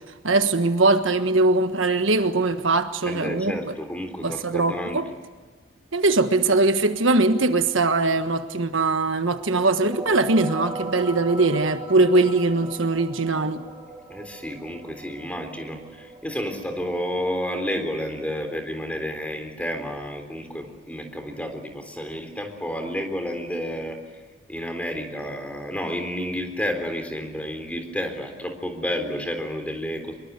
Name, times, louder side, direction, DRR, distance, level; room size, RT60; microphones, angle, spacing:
voice 1, 0.2-3.6 4.2-5.1 5.9-13.6, right 2 dB, 75° right, 8 dB, 1.4 m, -21 dB
voice 2, 3.0-5.0 14.1-24.0 24.5-30.1, equal, 5° left, 5 dB, 3.5 m, -30 dB
sound 1, 9.6-18.9, right 3 dB, 20° right, 4.4 m, -39 dB
24.5 x 22.5 x 8.2 m, 1.4 s
head